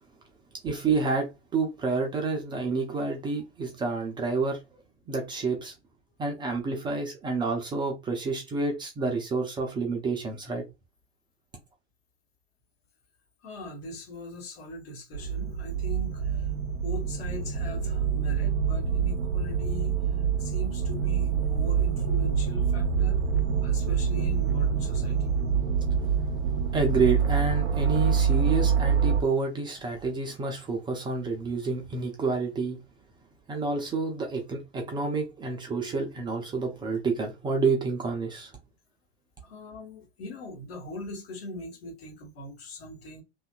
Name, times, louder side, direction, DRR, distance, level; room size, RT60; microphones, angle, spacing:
voice 1, 0.6-4.8 5.1-5.7 6.2-10.6 26.7-32.8 33.5-38.5, right 4 dB, 15° right, 0.4 m, -29 dB
voice 2, 13.4-16.5 16.7-23.2 23.6-25.4 39.4-43.2, left 2 dB, 65° left, 1.2 m, -41 dB
sound 1, 15.1-29.2, right 7 dB, 80° right, 0.5 m, -26 dB
2.7 x 2.4 x 2.2 m
figure-of-eight pair, 85°, 33 cm